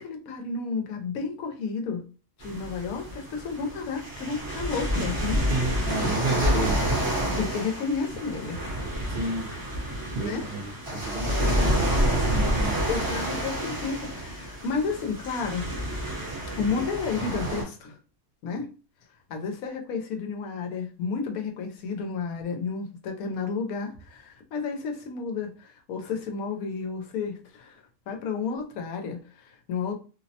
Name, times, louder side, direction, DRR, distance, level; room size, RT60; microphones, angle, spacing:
voice 1, 0.0-2.0 2.4-5.5 7.4-8.6 10.2-10.4 11.3-11.8 12.9-15.7 16.6-18.0 18.4-18.7 19.3-29.9, left 5 dB, 85° left, 1.0 m, -32 dB
sound 1, 2.4-17.6, equal, 20° right, 0.7 m, -28 dB
voice 2, 5.5-6.8 9.1-9.5 10.1-12.8, right 2 dB, 65° right, 0.5 m, -31 dB
2.6 x 2.0 x 2.7 m
omnidirectional pair, 1.5 m